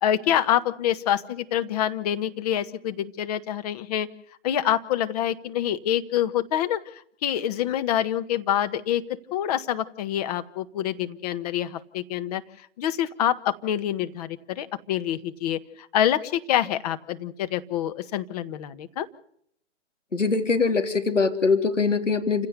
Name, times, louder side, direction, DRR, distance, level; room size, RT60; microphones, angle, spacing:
voice 1, 0.0-4.1 4.4-6.8 7.2-9.0 9.3-12.4 12.8-15.6 15.9-19.1, left 11 dB, 30° left, 10 dB, 1.5 m, -26 dB
voice 2, 20.1-22.5, left 4 dB, 85° left, 7 dB, 3.4 m, -22 dB
29.0 x 16.5 x 6.9 m, 0.67 s
figure-of-eight pair, 135°, 36 cm